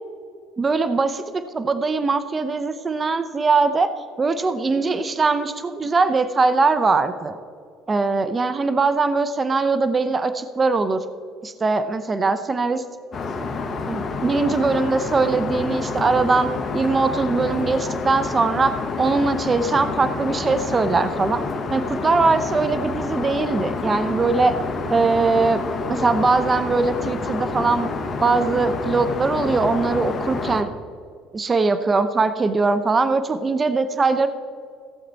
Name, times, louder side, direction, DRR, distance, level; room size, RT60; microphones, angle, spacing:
voice 1, 0.6-3.9 4.2-7.4 7.9-11.0 11.4-12.8 13.9-18.7 19.0-21.4 21.7-24.5 24.9-25.6 25.9-27.9 28.2-30.7 31.3-34.3, right 4 dB, 30° right, 11 dB, 0.7 m, -21 dB
Aircraft, 13.1-30.6, left 4 dB, 40° left, 1.3 m, -28 dB
16.0 x 7.5 x 4.1 m, 2.3 s
supercardioid pair, 90°, 0 cm